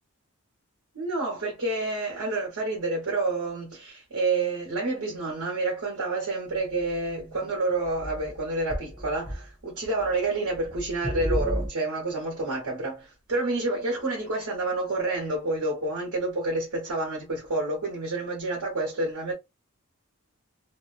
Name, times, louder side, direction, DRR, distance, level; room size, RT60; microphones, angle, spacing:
voice 1, 0.9-19.3, right 2 dB, 75° right, 1.1 m, -29 dB
sound 1, 6.5-7.5 7.8-9.5 9.8-10.2 10.5-11.7, equal, 5° right, 0.6 m, -34 dB
2.6 x 2.2 x 2.4 m
head